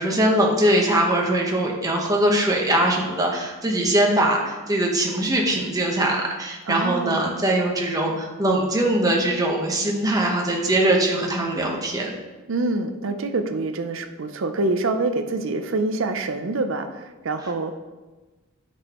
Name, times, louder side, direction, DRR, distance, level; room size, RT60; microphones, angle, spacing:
voice 1, 0.0-12.1, right 1 dB, 15° right, 0 dB, 1.0 m, -21 dB
voice 2, 6.7-7.2 12.5-17.8, right 2 dB, 55° right, 7 dB, 0.5 m, -26 dB
9.4 x 6.1 x 3.0 m, 1.2 s
head